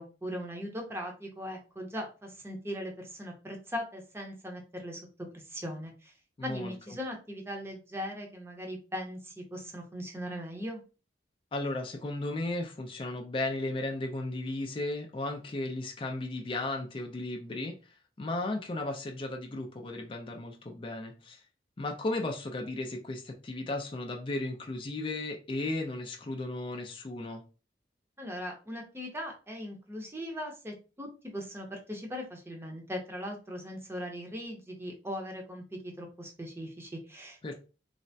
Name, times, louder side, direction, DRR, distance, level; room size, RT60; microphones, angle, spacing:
voice 1, 0.0-6.1 6.4-10.8 28.2-37.5, equal, 15° right, 1 dB, 0.6 m, -39 dB
voice 2, 6.4-7.0 11.5-21.4 21.8-27.4 37.4-37.5, left 2 dB, 30° left, 2 dB, 0.4 m, -35 dB
3.2 x 2.0 x 2.6 m, 0.33 s
head